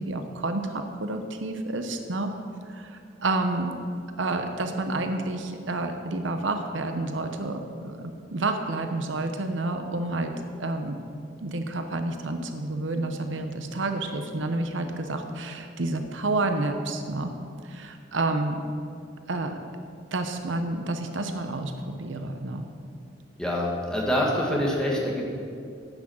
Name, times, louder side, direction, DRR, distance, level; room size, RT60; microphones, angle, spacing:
voice 1, 0.0-2.3 2.7-3.8 4.2-10.3 10.6-11.0 11.4-17.3 17.6-18.6 19.3-19.6 20.1-22.6, right 2 dB, 75° right, 6 dB, 0.8 m, -29 dB
voice 2, 23.4-25.3, equal, 5° left, -3 dB, 1.6 m, -25 dB
9.8 x 6.3 x 7.8 m, 2.3 s
head